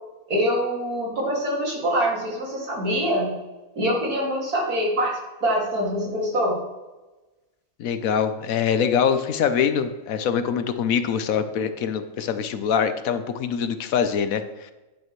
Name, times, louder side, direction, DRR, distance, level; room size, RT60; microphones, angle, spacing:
voice 1, 0.3-3.4 3.8-6.6, equal, 85° right, -2 dB, 2.9 m, -24 dB
voice 2, 7.8-14.7, left 7 dB, 70° left, 10 dB, 1.1 m, -24 dB
10.0 x 9.2 x 3.1 m, 1.1 s
omnidirectional pair, 1.5 m